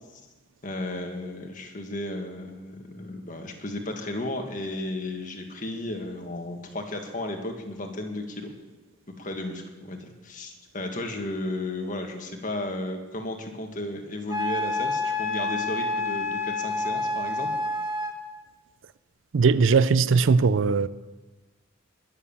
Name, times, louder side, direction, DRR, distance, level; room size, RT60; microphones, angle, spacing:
voice 1, 0.6-8.5 9.2-17.5, left 2 dB, 40° left, 3 dB, 1.8 m, -34 dB
Wind instrument woodwind instrument, 14.3-18.2, left 2 dB, 15° right, 1.9 m, -28 dB
voice 2, 19.3-20.9, right 5 dB, 65° right, 16 dB, 0.5 m, -19 dB
21.0 x 7.3 x 7.1 m, 1.2 s
head